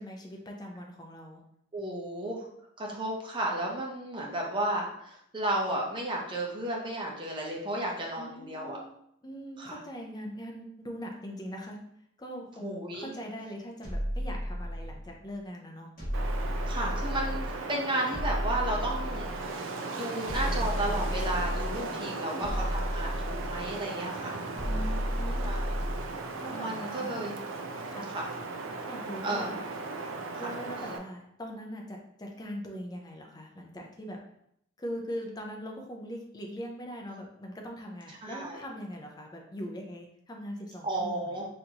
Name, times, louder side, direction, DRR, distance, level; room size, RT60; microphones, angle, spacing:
voice 1, 0.0-1.4 8.2-8.9 9.2-11.8 12.2-15.9 21.9-22.6 24.6-25.5 26.4-27.2 27.9-28.1 28.9-29.6 30.4-34.2 34.8-41.4, equal, 20° left, 1 dB, 0.5 m, -41 dB
voice 2, 1.7-2.5 2.8-8.8 9.6-9.8 12.6-13.1 16.7-19.3 19.6-24.4 25.4-25.8 26.5-27.4 28.1-28.3 29.2-29.5 30.3-30.5 38.2-38.6 40.8-41.5, right 1 dB, 25° right, -2 dB, 0.6 m, -33 dB
sound 1, 13.8-15.1 16.0-17.6 18.1-19.5 20.2-21.9 22.4-23.8 24.5-26.1, equal, 40° left, 1.5 m, -32 dB
Wind, 16.1-31.0, right 3 dB, 65° right, 0.4 m, -37 dB
4.3 x 2.6 x 2.8 m, 0.73 s
head